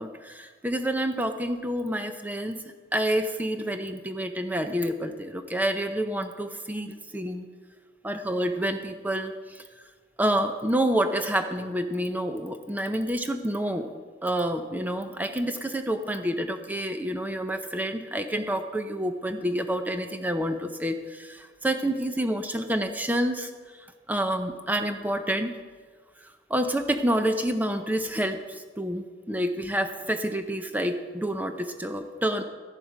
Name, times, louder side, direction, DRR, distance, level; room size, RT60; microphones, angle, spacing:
voice 1, 0.0-2.6 2.9-7.5 8.0-9.8 10.2-13.9 14.2-25.5 26.2-32.4, right 1 dB, 10° right, 7 dB, 0.6 m, -28 dB
13.0 x 11.5 x 5.0 m, 1.5 s
head